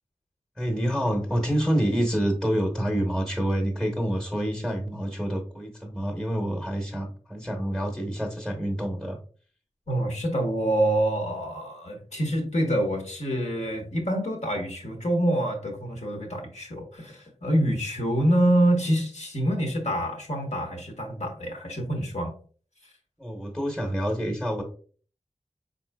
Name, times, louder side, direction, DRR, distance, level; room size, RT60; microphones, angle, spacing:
voice 1, 0.6-9.2 23.2-24.6, equal, ahead, 1 dB, 0.9 m, -27 dB
voice 2, 9.9-22.3 22.8-22.9, right 1 dB, 70° left, 2 dB, 1.1 m, -26 dB
4.2 x 4.0 x 2.2 m, 0.42 s
wide cardioid pair, 55°, 12 cm